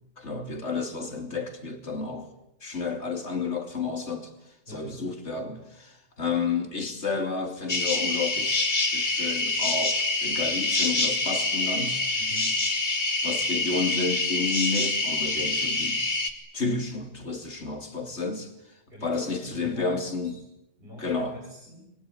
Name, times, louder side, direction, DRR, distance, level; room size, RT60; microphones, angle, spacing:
voice 1, 0.2-2.3 2.6-4.3 4.7-12.1 13.2-16.1 16.5-20.4 21.0-21.4, left 4 dB, 50° left, 3.1 m, -31 dB
voice 2, 4.7-5.0 12.2-12.6 18.9-20.3 20.8-22.0, equal, 40° right, 7.5 m, -44 dB
sound 1, 7.7-16.3, left 2 dB, 30° left, 2.2 m, -26 dB
24.0 x 22.0 x 9.3 m
omnidirectional pair, 1.6 m